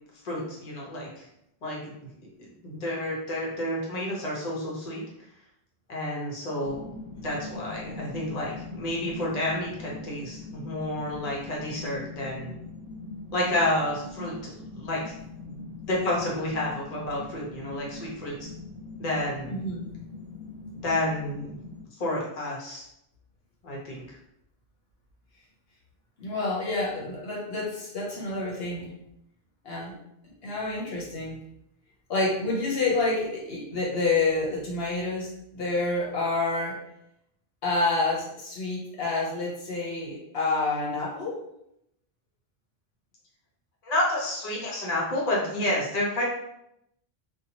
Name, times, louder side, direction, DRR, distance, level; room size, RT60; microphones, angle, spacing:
voice 1, 0.2-1.3 1.6-1.9 2.6-5.0 5.9-6.9 7.2-12.6 13.3-14.3 14.7-15.6 15.9-18.5 19.0-19.6 20.8-21.5 22.0-22.8 23.6-24.0 43.8-46.2, left 1 dB, 40° left, -4 dB, 0.8 m, -30 dB
sound 1, 6.6-21.8, left 3 dB, 55° right, 0.8 m, -42 dB
voice 2, 19.5-19.9 26.2-28.9 29.6-30.0 30.4-31.4 32.1-36.9 37.6-41.4, left 3 dB, 70° left, -4 dB, 0.9 m, -28 dB
2.7 x 2.2 x 2.8 m, 0.78 s
omnidirectional pair, 1.1 m